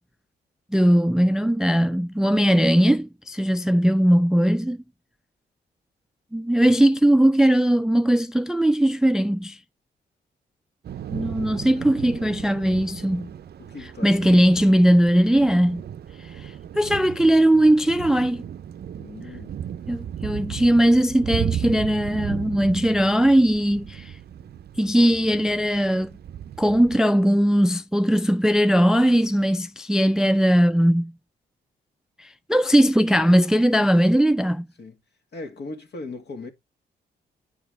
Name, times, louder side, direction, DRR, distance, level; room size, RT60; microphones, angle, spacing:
voice 1, 0.7-4.8 6.3-9.6 11.1-13.3 14.0-15.8 16.4-18.4 19.9-24.1 24.8-26.1 26.6-31.1 32.2-34.7, equal, 5° right, 0.4 m, -19 dB
Thunder / Rain, 10.8-27.0, right 9 dB, 55° right, 0.5 m, -35 dB
voice 2, 13.6-14.7 19.0-19.6 34.8-35.0 35.3-36.5, left 3 dB, 60° left, 1.9 m, -39 dB
9.4 x 4.8 x 3.4 m
supercardioid pair, 55°, 20 cm